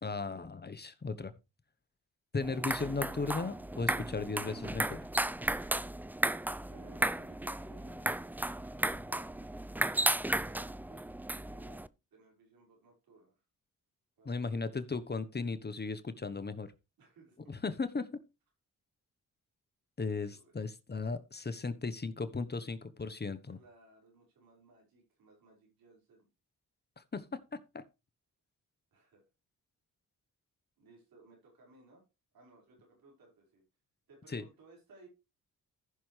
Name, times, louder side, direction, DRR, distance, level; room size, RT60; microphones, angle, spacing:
voice 1, 0.0-1.3 2.3-5.0 14.2-16.7 17.5-18.1 20.0-23.6 27.0-27.8 34.3-34.4, left 4 dB, 30° left, 1.1 m, -36 dB
sound 1, 2.4-11.9, right 1 dB, 5° right, 0.4 m, -34 dB
voice 2, 6.7-11.9 12.1-13.4 14.2-14.6 17.0-17.5 20.2-20.6 23.5-26.3 28.9-29.2 30.8-32.0 32.3-33.6 34.1-35.1, right 2 dB, 80° right, 5.2 m, -61 dB
14.5 x 6.0 x 3.3 m
supercardioid pair, 55°, 34 cm